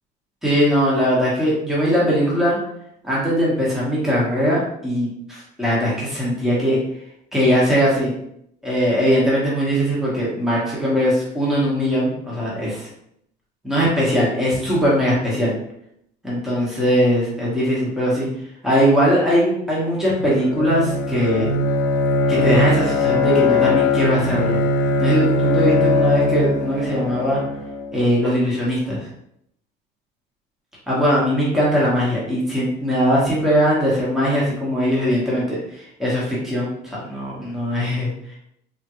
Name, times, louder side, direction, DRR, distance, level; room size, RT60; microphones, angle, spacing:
voice 1, 0.4-2.6 3.0-6.8 7.3-8.1 8.6-12.9 13.6-15.5 16.2-18.3 18.6-21.5 22.3-24.6 25.0-27.4 27.9-29.1 30.9-38.1, equal, ahead, -7 dB, 1.3 m, -20 dB
Bowed string instrument, 20.1-27.9, left 2 dB, 80° left, 0.7 m, -20 dB
3.6 x 3.6 x 3.1 m, 0.73 s
cardioid pair, 140°, 18 cm